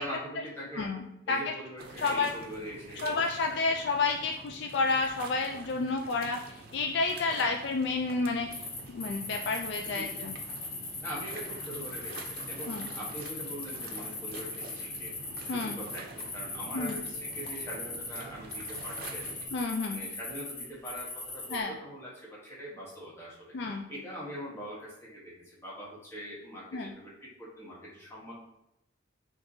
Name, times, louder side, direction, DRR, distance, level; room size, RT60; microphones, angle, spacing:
voice 1, 0.0-0.9 1.3-3.2 7.3-7.4 9.8-10.3 11.0-15.1 15.4-19.5 19.9-23.6 23.9-28.3, equal, 15° left, -6 dB, 1.0 m, -43 dB
voice 2, 0.7-1.5 2.0-2.3 3.0-8.7 8.9-10.3 12.7-12.9 15.5-15.8 16.7-17.0 19.5-20.0 21.5-21.7 23.5-23.8 26.7-26.9, left 3 dB, 60° left, 2 dB, 0.3 m, -30 dB
sound 1, 1.8-19.5, right 2 dB, 55° right, 0.6 m, -47 dB
sound 2, 8.5-18.2 18.5-21.6, left 3 dB, 90° left, 1.1 m, -39 dB
5.8 x 2.6 x 2.7 m, 0.84 s
head